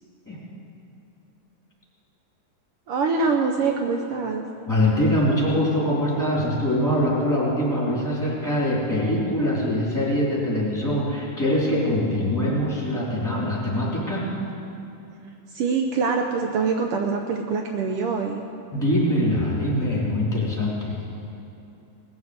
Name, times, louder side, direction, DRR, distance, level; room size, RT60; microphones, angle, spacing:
voice 1, 2.9-4.4 15.5-18.4, right 4 dB, 85° right, 3 dB, 1.2 m, -24 dB
voice 2, 4.7-14.3 18.7-20.9, left 1 dB, 5° left, -7 dB, 3.4 m, -23 dB
19.5 x 7.3 x 7.9 m, 2.8 s
omnidirectional pair, 3.5 m